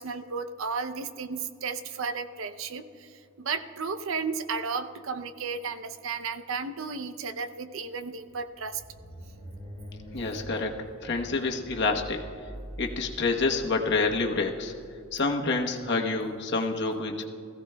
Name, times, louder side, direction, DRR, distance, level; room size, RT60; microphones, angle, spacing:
voice 1, 0.0-3.1 3.4-8.8, right 5 dB, 70° right, 10 dB, 0.6 m, -33 dB
sound 1, 8.2-16.4, equal, 40° right, 3.4 m, -45 dB
voice 2, 10.1-10.7 11.0-12.2 12.8-14.7 15.1-17.2, left 3 dB, 55° left, 2 dB, 1.1 m, -27 dB
20.5 x 15.0 x 2.2 m, 2.5 s
head